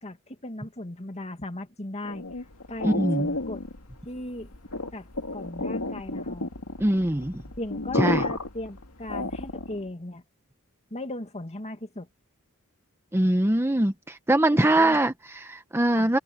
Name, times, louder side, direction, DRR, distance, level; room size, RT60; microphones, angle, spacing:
voice 1, 0.0-2.3 2.7-3.6 4.1-4.5 4.9-5.1 5.3-6.5 7.6-10.2 10.9-12.1 14.5-15.0 15.9-16.1, left 1 dB, 30° left, 2.2 m, -37 dB
sound 1, 2.0-9.9, left 2 dB, 80° left, 2.1 m, -32 dB
voice 2, 2.8-3.3 6.8-7.3 8.0-8.3 13.1-16.2, right 1 dB, 10° right, 0.9 m, -22 dB
head